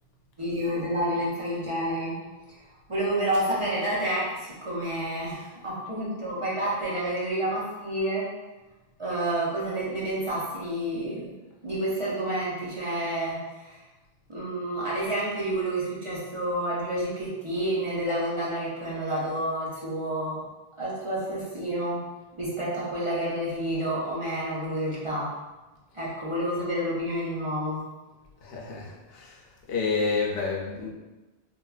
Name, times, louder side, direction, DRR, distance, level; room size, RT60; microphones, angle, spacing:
voice 1, 0.4-2.2 2.5-2.6 2.9-8.3 9.0-11.3 11.6-13.8 14.3-20.4 20.8-22.0 22.4-25.3 25.9-27.8, right 1 dB, 35° right, -8 dB, 0.6 m, -29 dB
voice 2, 28.4-29.3 29.7-30.9, left 4 dB, 75° left, -2 dB, 0.8 m, -29 dB
3.2 x 2.2 x 2.3 m, 1.1 s
omnidirectional pair, 1.0 m